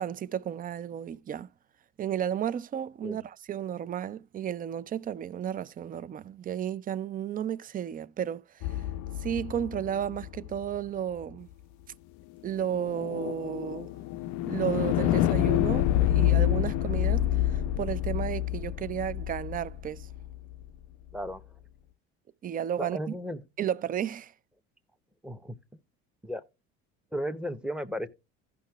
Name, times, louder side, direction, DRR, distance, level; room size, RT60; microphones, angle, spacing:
voice 1, 0.0-1.5 2.0-8.8 9.2-11.5 12.4-13.9 14.5-20.1 22.4-23.2 23.6-24.3, right 9 dB, 30° right, 0.4 m, -33 dB
sound 1, 8.6-10.8 12.6-20.7, left 13 dB, 65° left, 0.5 m, -28 dB
voice 2, 22.8-23.4 25.2-25.5 26.2-26.4 27.1-28.1, equal, 5° right, 0.8 m, -34 dB
15.5 x 5.7 x 2.3 m
supercardioid pair, 80°, 31 cm